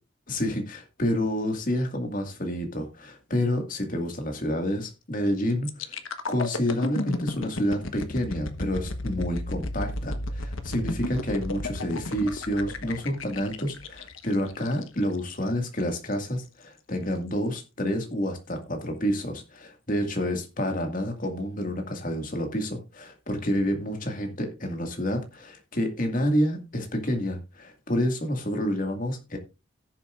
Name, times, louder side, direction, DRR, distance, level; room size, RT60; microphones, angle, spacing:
voice 1, 0.3-6.0 6.3-29.4, equal, 40° left, 4 dB, 2.0 m, -29 dB
sound 1, 5.7-15.5 16.0-16.1, left 2 dB, 80° left, 1.2 m, -33 dB
17.5 x 7.2 x 2.5 m, 0.29 s
head